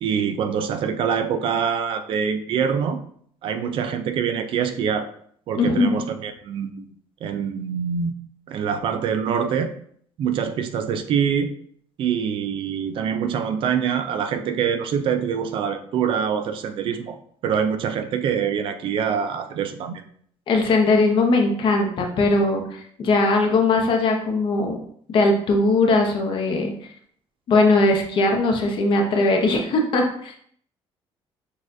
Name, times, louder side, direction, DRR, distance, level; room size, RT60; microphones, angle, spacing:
voice 1, 0.0-3.0 3.4-5.1 5.5-6.9 7.2-8.2 8.5-9.7 10.2-11.5 12.0-17.2 17.4-20.1, right 7 dB, 55° right, 8 dB, 0.4 m, -25 dB
voice 2, 5.6-6.0 20.5-24.8 25.1-26.7 27.5-30.3, left 2 dB, 50° left, 3 dB, 0.8 m, -20 dB
6.4 x 2.4 x 2.5 m, 0.63 s
cardioid pair, 145°, 11 cm